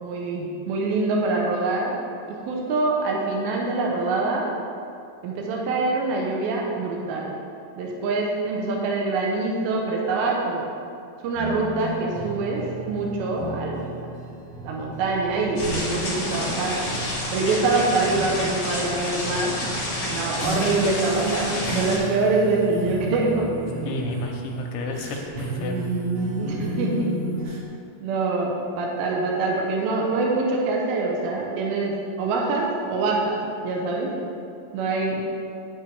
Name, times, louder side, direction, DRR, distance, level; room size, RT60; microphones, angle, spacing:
voice 1, 0.0-1.9 2.4-4.5 5.2-7.3 7.8-10.7 11.2-13.9 14.6-16.8 17.3-19.5 20.1-23.5 26.4-26.9 28.0-33.4 33.6-34.1 34.7-35.2, right 3 dB, 80° right, -1 dB, 2.2 m, -25 dB
sound 1, 11.3-27.6, right 2 dB, 60° right, 3.8 m, -32 dB
sound 2, 15.6-22.0, left 1 dB, 45° left, 2.0 m, -29 dB
voice 2, 23.9-25.8, left 4 dB, 85° left, 1 dB, 3.0 m, -32 dB
9.9 x 8.1 x 3.5 m, 2.5 s
omnidirectional pair, 5.6 m